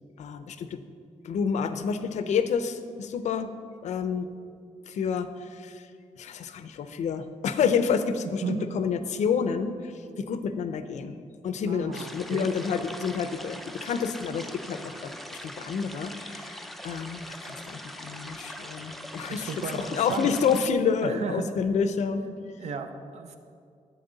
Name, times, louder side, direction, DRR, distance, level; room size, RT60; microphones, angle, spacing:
voice 1, 0.2-0.8 1.2-3.5 3.8-4.3 4.9-5.8 6.2-9.9 10.2-11.1 11.4-22.2, left 6 dB, 75° left, 10 dB, 0.6 m, -29 dB
voice 2, 11.7-12.5 19.3-20.3 21.0-21.5 22.6-23.4, right 6 dB, 65° right, 7 dB, 0.8 m, -34 dB
sound 1, 11.9-20.7, equal, ahead, 0.4 m, -42 dB
11.5 x 8.3 x 4.0 m, 2.3 s
wide cardioid pair, 180°, 12 cm